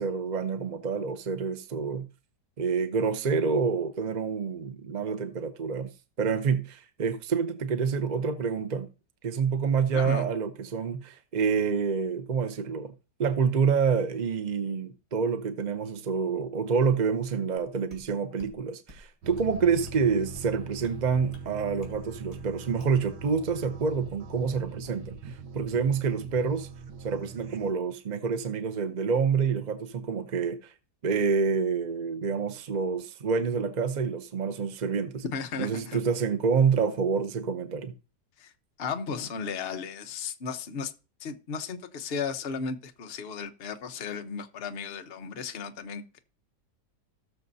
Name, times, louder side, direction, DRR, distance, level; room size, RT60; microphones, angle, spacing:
voice 1, 0.0-2.1 2.6-5.9 6.2-8.9 9.2-12.9 13.2-26.7 27.0-30.7 31.0-35.2 35.6-37.9, right 5 dB, 55° right, 0.5 m, -27 dB
voice 2, 9.9-10.3 35.3-36.0 38.4-38.5 38.8-40.9 41.2-46.2, left 5 dB, 40° left, 1.1 m, -35 dB
sound 1, 17.6-17.7 17.9-18.1 18.4-18.6 18.9-19.1 19.4-19.5 19.9-20.0 20.4-20.5 20.8-21.0 21.3-21.5 21.8-22.0 22.3-22.5 22.8-23.0, left 1 dB, 15° right, 3.3 m, -49 dB
sound 2, 19.2-27.7, right 3 dB, 85° right, 1.5 m, -42 dB
19.0 x 6.6 x 2.7 m
omnidirectional pair, 1.8 m